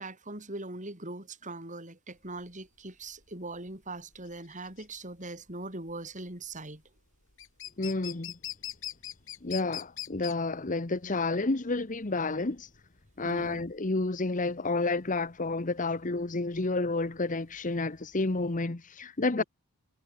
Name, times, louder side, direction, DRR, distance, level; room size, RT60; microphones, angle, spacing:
voice 1, 0.0-6.8 13.2-13.6 19.4-19.5, right 2 dB, 35° right, 6.2 m, -41 dB
sound 1, 2.2-18.6, left 12 dB, 60° left, 7.7 m, -44 dB
voice 2, 7.8-8.3 9.4-12.7 13.2-19.4, left 3 dB, 35° left, 1.0 m, -30 dB
head